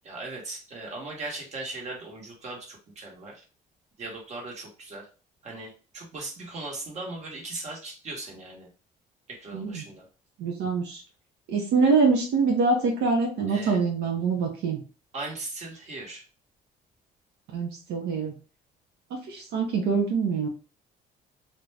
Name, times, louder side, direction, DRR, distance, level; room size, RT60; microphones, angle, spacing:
voice 1, 0.0-3.4 4.0-5.1 5.4-8.7 9.3-10.0 13.5-13.8 15.1-16.2, right 2 dB, 40° right, -1 dB, 1.1 m, -38 dB
voice 2, 9.5-9.8 10.4-11.0 11.5-14.8 17.5-18.3 19.1-20.5, right 4 dB, 80° right, 1 dB, 0.7 m, -25 dB
2.4 x 2.1 x 3.2 m, 0.35 s
cardioid pair, 110°, 17 cm